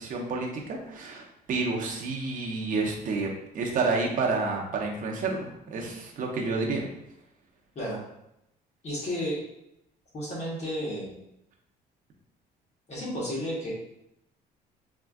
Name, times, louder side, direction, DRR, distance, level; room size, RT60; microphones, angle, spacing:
voice 1, 0.0-6.9, right 3 dB, 50° right, 0 dB, 0.8 m, -29 dB
voice 2, 8.8-9.4 10.1-11.1 12.9-13.7, equal, 40° left, -6 dB, 1.1 m, -32 dB
4.2 x 2.4 x 2.3 m, 0.82 s
cardioid pair, 110°, 17 cm